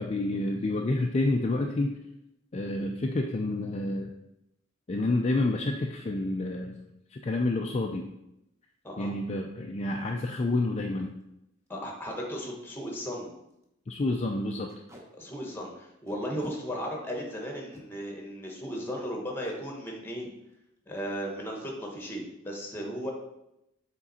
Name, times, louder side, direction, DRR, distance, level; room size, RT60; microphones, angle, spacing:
voice 1, 0.0-2.0 2.5-4.1 4.9-6.8 7.1-8.1 9.0-11.1 13.9-14.7, left 2 dB, 30° left, 2 dB, 0.4 m, -29 dB
Packing tape duct tape, 11.0-11.2 11.7-11.8 12.0-12.1 12.6-12.7 13.0-13.1 13.5-13.7 14.7-15.0 16.1-16.6 17.5-17.8 19.4-19.6 19.9-20.1 20.4-20.8, equal, 15° right, 1.0 m, -49 dB
voice 2, 11.7-13.3 15.2-20.3 20.9-23.1, equal, 10° left, 0 dB, 1.3 m, -36 dB
7.4 x 3.8 x 4.2 m, 0.85 s
head